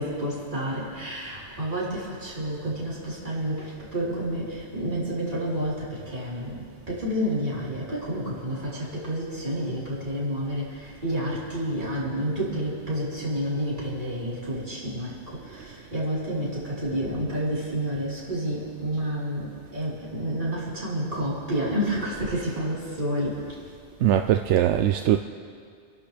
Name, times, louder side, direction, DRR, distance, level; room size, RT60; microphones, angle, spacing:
voice 1, 0.0-6.6 6.9-10.6 11.0-15.1 15.5-19.4 19.7-23.3, equal, 45° right, -9 dB, 4.6 m, -29 dB
voice 2, 24.0-25.2, right 11 dB, 85° right, 7 dB, 0.9 m, -21 dB
29.0 x 11.5 x 3.5 m, 2.2 s
omnidirectional pair, 1.2 m